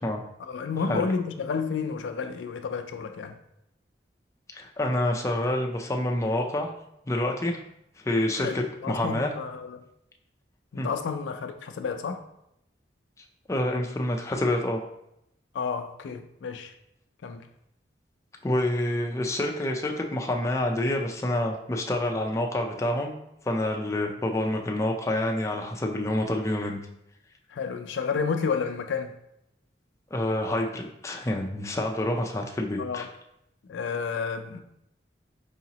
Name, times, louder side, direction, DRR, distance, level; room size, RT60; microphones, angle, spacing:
voice 1, 0.4-3.4 8.4-9.8 10.7-12.2 15.5-16.7 17.2-17.5 27.5-29.1 32.8-33.1 33.7-34.6, left 5 dB, 90° left, 0.4 m, -31 dB
voice 2, 4.5-6.7 7.1-7.6 8.0-9.3 10.8-10.9 13.5-14.8 18.4-23.1 23.4-26.8 30.1-33.1, left 1 dB, 15° left, 0.4 m, -27 dB
4.8 x 2.8 x 2.8 m
head